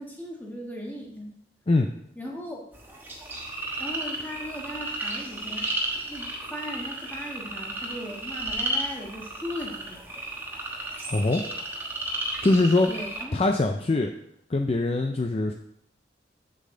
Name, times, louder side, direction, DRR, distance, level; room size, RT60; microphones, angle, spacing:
voice 1, 0.0-1.3 2.2-2.7 3.8-5.7 6.1-10.0 12.9-13.4, equal, 10° left, -1 dB, 1.4 m, -37 dB
sound 1, 2.7-13.2, right 1 dB, 10° right, 1.1 m, -33 dB
voice 2, 11.1-11.4 12.4-12.9 13.3-14.1 14.5-15.5, left 2 dB, 35° left, 4 dB, 0.4 m, -22 dB
7.6 x 6.8 x 3.8 m, 0.73 s
head